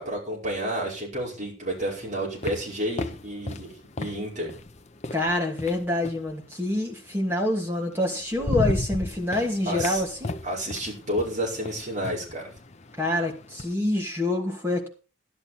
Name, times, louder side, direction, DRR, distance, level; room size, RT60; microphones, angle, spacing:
voice 1, 0.0-4.5 9.7-10.0 10.4-12.4, right 1 dB, 40° right, -3 dB, 4.9 m, -30 dB
sound 1, 1.7-6.3 7.6-7.7 8.1-13.7, left 2 dB, 35° left, 0.7 m, -34 dB
voice 2, 5.1-10.4 13.0-14.9, left 1 dB, 10° right, 0 dB, 2.6 m, -26 dB
12.5 x 11.5 x 4.2 m, 0.35 s
head